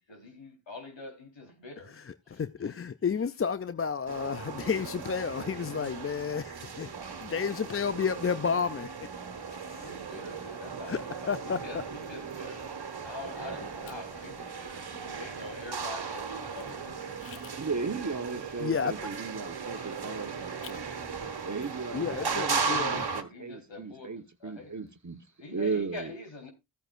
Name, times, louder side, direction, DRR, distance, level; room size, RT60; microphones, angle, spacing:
voice 1, 0.1-2.0 2.3-2.7 9.8-12.7 13.0-17.5 17.9-18.1 21.9-22.5 23.3-24.1 24.4-24.8 25.4-26.5, left 3 dB, 65° left, 4.2 m, -45 dB
voice 2, 2.3-6.9 7.2-8.9 10.9-11.6 17.2-17.4 18.6-18.9 21.9-23.1, left 6 dB, 30° left, 0.5 m, -31 dB
sound 1, 4.1-23.2, right 5 dB, 50° right, 1.7 m, -37 dB
voice 3, 17.6-21.0 21.5-25.2 25.5-26.2, right 4 dB, 35° right, 1.4 m, -36 dB
15.0 x 8.9 x 2.6 m
cardioid pair, 40°, 49 cm